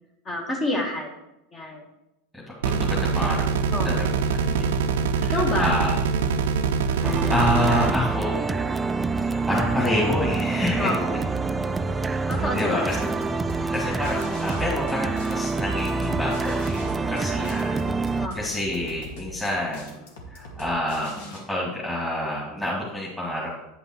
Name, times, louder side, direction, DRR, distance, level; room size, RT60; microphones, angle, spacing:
voice 1, 0.2-1.2 1.5-1.9 3.7-4.1 5.3-5.7 10.8-11.2 12.3-12.9 18.2-18.5, left 1 dB, 30° left, 0 dB, 1.7 m, -28 dB
voice 2, 2.3-6.0 6.9-8.4 9.2-11.0 12.1-12.2 12.5-13.1 13.7-20.0 20.3-23.6, left 1 dB, 10° left, -4 dB, 2.1 m, -28 dB
sound 1, 2.6-7.9, right 5 dB, 85° right, 0.6 m, -24 dB
sound 2, 7.0-18.3, right 3 dB, 15° right, 0.4 m, -26 dB
sound 3, 12.3-21.4, left 1 dB, 80° left, 2.0 m, -42 dB
9.3 x 5.5 x 4.5 m, 0.90 s
supercardioid pair, 115°, 0 cm